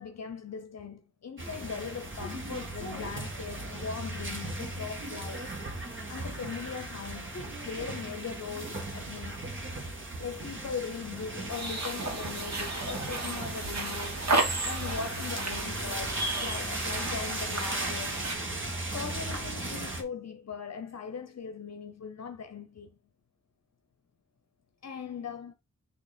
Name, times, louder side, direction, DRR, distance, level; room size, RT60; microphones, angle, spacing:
voice 1, 0.0-5.5 6.1-9.5 10.2-14.2 14.6-18.2 18.9-22.9 24.8-25.5, left 6 dB, 60° left, 0.7 m, -40 dB
sound 1, 1.4-20.0, right 2 dB, 40° right, 1.6 m, -37 dB
sound 2, 11.5-18.3, right 2 dB, 60° right, 1.5 m, -33 dB
6.5 x 2.9 x 5.0 m
wide cardioid pair, 100°, 30 cm